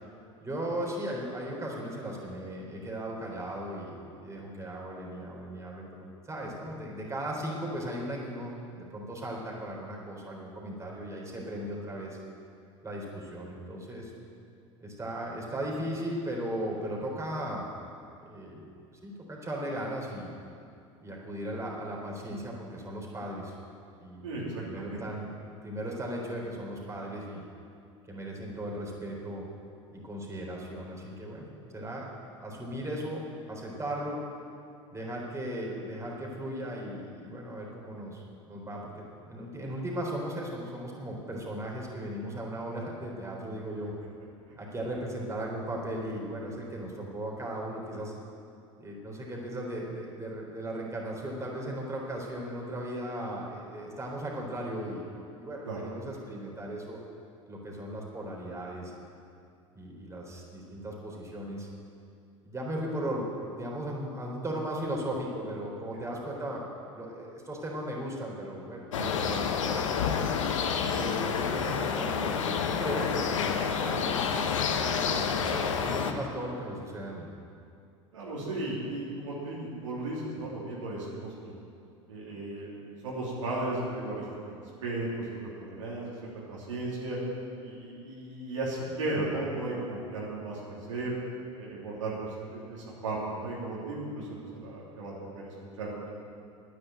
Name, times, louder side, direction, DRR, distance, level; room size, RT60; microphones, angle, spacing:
voice 1, 0.4-4.0 4.2-12.2 12.8-14.1 14.8-17.7 18.2-18.6 19.0-20.3 21.0-23.5 24.0-25.3 25.6-27.4 28.1-29.4 29.9-31.5 31.7-32.0 32.4-34.2 34.9-38.2 38.5-43.9 44.6-48.1 48.8-55.1 55.4-57.0 57.5-59.0 59.7-61.7 62.4-63.3 63.5-66.6 66.9-68.8 69.1-70.1 70.9-73.5 73.8-74.4 75.1-77.3, right 1 dB, 20° right, -2 dB, 3.9 m, -37 dB
voice 2, 24.2-25.0 55.6-55.8 69.0-69.1 74.8-75.0 75.3-75.4 78.1-81.6 82.1-82.7 83.0-87.2 87.6-91.1 91.6-96.1, right 2 dB, 85° right, -6 dB, 3.2 m, -35 dB
sound 1, 68.9-76.1, left 6 dB, 80° left, 1.0 m, -29 dB
10.5 x 9.8 x 9.0 m, 2.5 s
hypercardioid pair, 85°, 16 cm